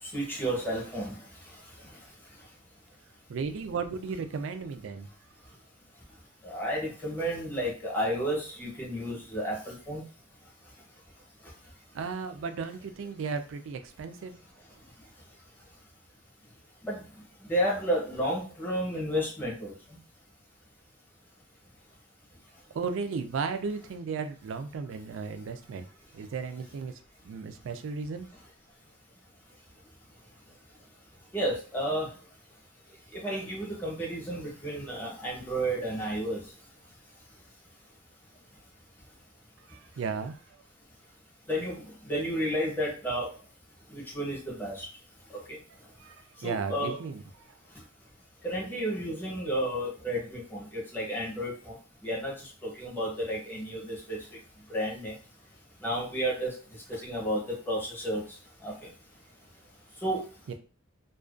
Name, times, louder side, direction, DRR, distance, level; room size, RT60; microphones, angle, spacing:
voice 1, 0.0-2.5 6.4-10.0 10.4-10.7 11.4-11.7 14.6-14.7 15.0-15.1 16.8-20.0 31.3-32.3 32.9-36.7 41.5-43.4 43.9-44.9 45.3-45.8 46.4-46.9 47.7-47.8 48.4-54.4 54.7-55.2 55.8-58.9 59.9-60.3, equal, 10° left, -4 dB, 0.8 m, -32 dB
voice 2, 3.3-5.1 11.9-14.4 22.7-25.9 26.1-26.9 27.2-28.3 39.7-40.3 46.0-46.2 46.4-47.2 60.5-60.6, right 5 dB, 65° right, 9 dB, 0.3 m, -35 dB
2.4 x 2.2 x 2.4 m, 0.37 s
head